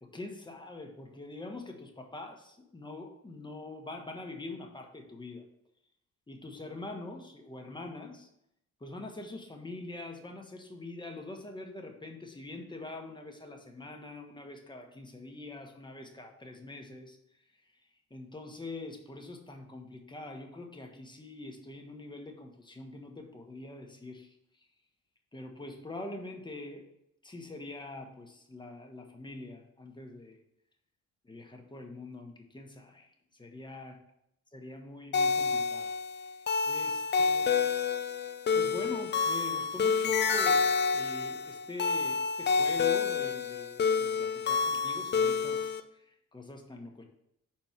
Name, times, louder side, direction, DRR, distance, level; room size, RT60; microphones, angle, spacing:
voice 1, 0.0-5.4 6.3-8.3 8.8-17.2 18.1-24.3 25.3-26.9 27.2-30.4 31.2-34.0 34.5-35.9 36.2-37.7 38.5-40.7 40.9-47.0, left 2 dB, 15° left, 2 dB, 1.3 m, -44 dB
sound 1, 35.1-45.8, left 5 dB, 35° left, 0.6 m, -28 dB
6.1 x 4.4 x 5.9 m, 0.77 s
cardioid pair, 90°, 30 cm